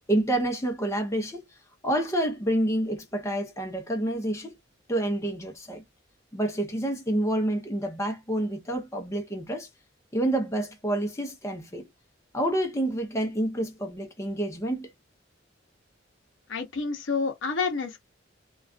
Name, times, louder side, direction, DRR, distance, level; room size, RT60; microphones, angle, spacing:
voice 1, 0.1-1.5 1.8-4.5 4.9-5.8 6.3-9.7 10.1-11.9 12.3-14.9, right 1 dB, 15° left, 0.6 m, -28 dB
voice 2, 16.5-18.0, left 4 dB, 70° left, 0.7 m, -29 dB
2.4 x 2.3 x 2.3 m
head